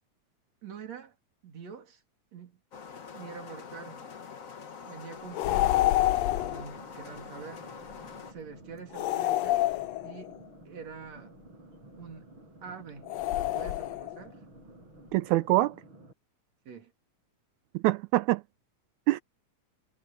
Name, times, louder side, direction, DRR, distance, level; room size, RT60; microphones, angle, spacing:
voice 1, 0.6-1.1 1.4-2.0 2.3-2.5 3.1-4.1 4.8-6.0 6.2-7.7 8.2-9.6 10.0-10.4 10.6-11.3 12.0-12.3 12.6-14.5 16.6-16.9, right 6 dB, 60° right, 3.5 m, -46 dB
sound 1, 2.7-8.3, left 6 dB, 60° left, 0.8 m, -45 dB
sound 2, 5.3-6.7 8.9-10.4 13.1-14.2, left 15 dB, 85° left, 1.5 m, -27 dB
sound 3, 5.6-16.1, right 2 dB, 40° right, 7.6 m, -52 dB
voice 2, 15.1-15.8 17.7-18.4 19.1-19.2, right 17 dB, 80° right, 1.8 m, -24 dB
omnidirectional pair, 3.6 m